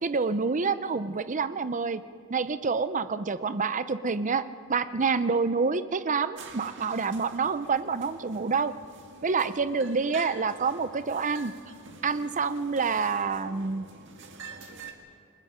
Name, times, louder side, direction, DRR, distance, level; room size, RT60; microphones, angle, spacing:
voice 1, 0.0-2.0 2.3-4.4 4.7-8.7 9.2-11.5 12.0-13.9, right 5 dB, 35° right, 13 dB, 0.6 m, -27 dB
sound 1, 6.4-14.9, right 4 dB, 55° right, 1.9 m, -47 dB
28.5 x 21.0 x 5.1 m, 2.2 s
head